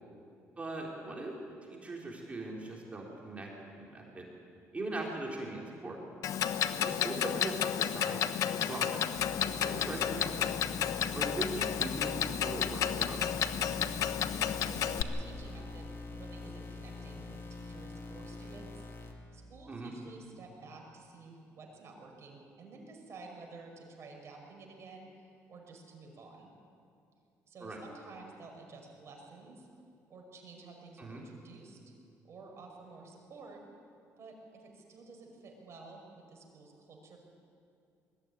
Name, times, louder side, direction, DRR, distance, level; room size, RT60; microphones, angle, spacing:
voice 1, 0.6-1.3 1.7-3.5 3.8-4.3 4.7-6.0 6.8-9.0 9.6-10.5 11.1-13.3 19.7-19.9 27.6-27.8 31.0-31.2, right 2 dB, 20° right, -2 dB, 3.9 m, -40 dB
Clock, 6.2-15.0, left 9 dB, 70° left, 0.9 m, -32 dB
sound 1, 9.1-19.1, left 2 dB, 40° left, 2.6 m, -44 dB
voice 2, 14.6-18.9 19.3-26.5 27.5-29.7 30.1-31.8 32.2-33.6 34.2-37.2, right 3 dB, 50° right, 1 dB, 5.8 m, -51 dB
21.0 x 14.5 x 9.7 m, 2.4 s
cardioid pair, 95°, 6 cm